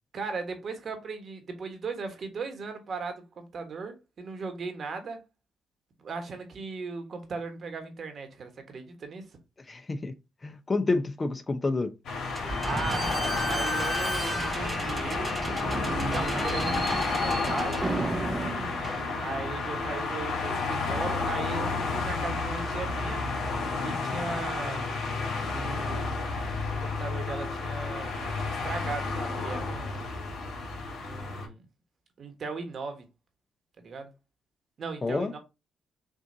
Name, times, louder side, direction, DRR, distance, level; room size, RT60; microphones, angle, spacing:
voice 1, 0.1-5.2 6.0-9.3 12.6-15.4 16.1-17.8 18.3-18.6 19.2-23.2 23.8-24.9 25.5-26.4 26.7-30.1 31.0-31.6 32.2-33.0 33.8-34.1 34.8-35.4, right 4 dB, 50° right, 1.4 m, -38 dB
voice 2, 9.7-10.1 10.4-11.9 35.0-35.3, left 3 dB, 25° left, 0.7 m, -28 dB
sound 1, 12.0-31.5, left 3 dB, 75° left, 1.8 m, -31 dB
Slam / Squeak, 12.3-19.6, right 2 dB, 25° right, 0.7 m, -33 dB
6.3 x 2.6 x 2.7 m
cardioid pair, 90°, 0 cm